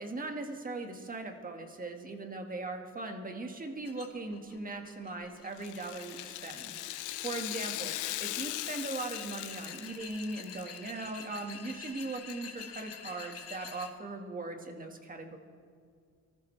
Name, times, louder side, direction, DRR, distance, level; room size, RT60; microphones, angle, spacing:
voice 1, 0.0-7.9 8.2-15.4, right 2 dB, 30° right, 4 dB, 1.8 m, -39 dB
sound 1, 3.9-13.9, left 6 dB, 55° left, 1.3 m, -48 dB
Rattle (instrument), 5.5-10.8 11.1-11.2 12.0-12.1, left 16 dB, 85° left, 0.5 m, -39 dB
23.0 x 13.5 x 3.3 m, 2.2 s
cardioid pair, 90°, 30 cm